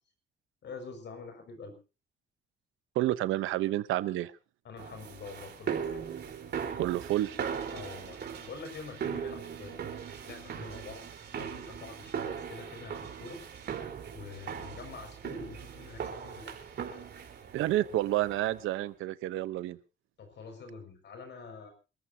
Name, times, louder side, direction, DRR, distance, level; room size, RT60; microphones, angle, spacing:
voice 1, 0.6-1.7 4.6-6.0 7.7-11.0 11.3-13.4 14.1-16.6 20.2-21.7, left 4 dB, 60° left, 6 dB, 5.8 m, -46 dB
voice 2, 2.9-4.3 6.8-7.4 17.5-19.8, right 14 dB, 90° right, 15 dB, 0.9 m, -29 dB
sound 1, 4.8-18.7, right 7 dB, 60° right, 4.1 m, -39 dB
27.5 x 14.0 x 2.8 m, 0.32 s
cardioid pair, 90°, 20 cm